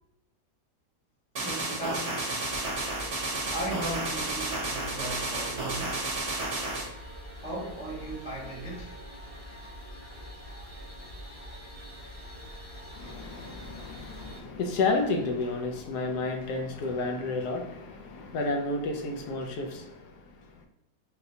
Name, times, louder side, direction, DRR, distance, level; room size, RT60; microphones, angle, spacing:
sound 1, 1.3-6.9, right 2 dB, 45° right, 1.0 m, -32 dB
voice 1, 1.4-2.4 3.5-6.2 7.4-9.0, right 1 dB, 5° right, 0.6 m, -37 dB
sound 2, 2.4-14.4, equal, 55° left, 0.8 m, -44 dB
voice 2, 12.9-20.7, left 3 dB, 80° left, 1.1 m, -31 dB
4.0 x 2.2 x 2.7 m
omnidirectional pair, 1.8 m